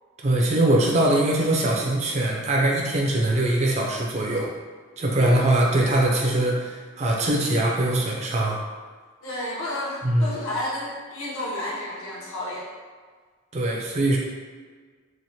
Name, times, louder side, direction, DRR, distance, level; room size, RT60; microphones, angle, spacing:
voice 1, 0.2-4.5 5.0-8.6 10.0-10.4 13.5-14.2, right 1 dB, 30° right, -2 dB, 0.4 m, -22 dB
voice 2, 9.2-12.7, left 1 dB, 80° left, -6 dB, 0.7 m, -31 dB
3.0 x 2.1 x 2.7 m, 1.6 s
head